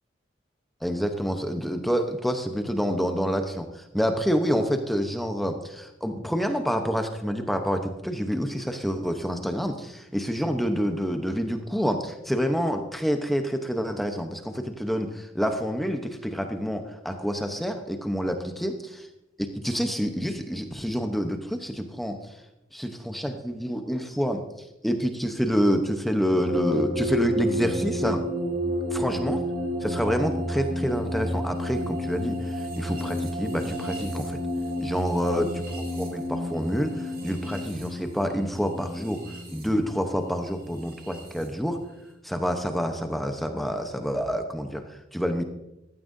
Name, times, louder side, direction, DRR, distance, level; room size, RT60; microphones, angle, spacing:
voice 1, 0.8-19.1 19.4-22.2 22.7-24.4 24.8-28.2 28.9-29.4 29.8-34.4 34.8-39.2 39.5-41.8 42.2-45.4, equal, ahead, 5 dB, 0.8 m, -27 dB
sound 1, 26.5-41.5, equal, 50° right, 2.7 m, -31 dB
15.5 x 13.0 x 2.7 m, 0.93 s
head